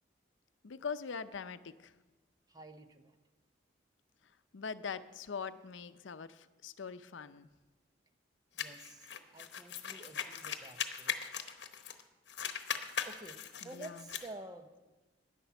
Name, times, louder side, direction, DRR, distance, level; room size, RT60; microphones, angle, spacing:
voice 1, 0.6-1.9 4.5-7.5 13.6-14.0, left 5 dB, 90° left, 13 dB, 0.6 m, -42 dB
voice 2, 2.5-3.2 8.5-11.2 13.0-14.8, right 2 dB, 20° right, 8 dB, 0.7 m, -50 dB
sound 1, 8.6-12.0 12.3-14.3, left 8 dB, 65° left, 0.9 m, -40 dB
11.0 x 10.0 x 6.9 m, 1.2 s
head